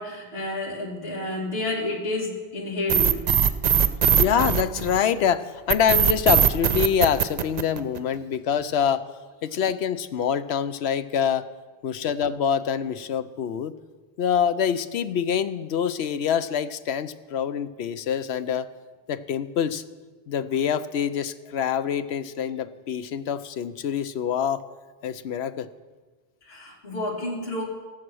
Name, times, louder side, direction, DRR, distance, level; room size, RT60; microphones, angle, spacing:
voice 1, 0.0-3.2 26.4-27.6, left 1 dB, 70° left, -4 dB, 3.1 m, -30 dB
sound 1, 2.9-5.2 5.7-8.1, right 8 dB, 50° right, 0.6 m, -20 dB
voice 2, 4.2-9.0 9.4-11.4 11.8-13.7 14.2-18.7 19.1-19.8 20.3-24.6 25.0-25.7, left 8 dB, 85° left, 13 dB, 0.9 m, -25 dB
17.0 x 7.5 x 6.2 m, 1.4 s
omnidirectional pair, 1.1 m